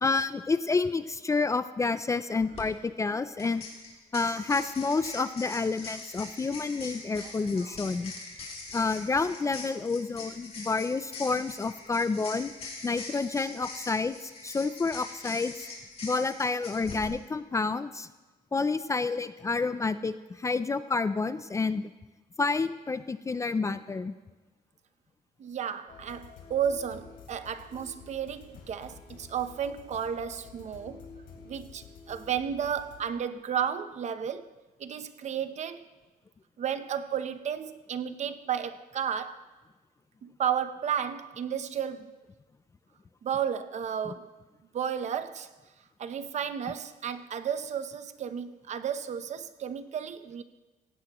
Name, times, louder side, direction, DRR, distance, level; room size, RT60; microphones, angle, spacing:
voice 1, 0.0-3.6 4.1-8.1 8.7-12.5 12.8-15.7 16.0-18.1 18.5-21.9 22.4-24.1 44.1-44.2, left 4 dB, 20° left, 0.4 m, -29 dB
sound 1, 2.4-2.6 3.4-17.1, left 3 dB, 45° left, 4.2 m, -43 dB
voice 2, 25.4-31.1 31.5-34.5 34.8-35.8 36.6-39.4 40.2-42.1 43.2-44.4 44.7-45.5 46.0-50.4, right 8 dB, 50° right, 0.8 m, -33 dB
sound 2, 25.9-34.0, left 5 dB, 90° left, 3.1 m, -50 dB
17.5 x 16.5 x 3.0 m
cardioid pair, 130°, 15 cm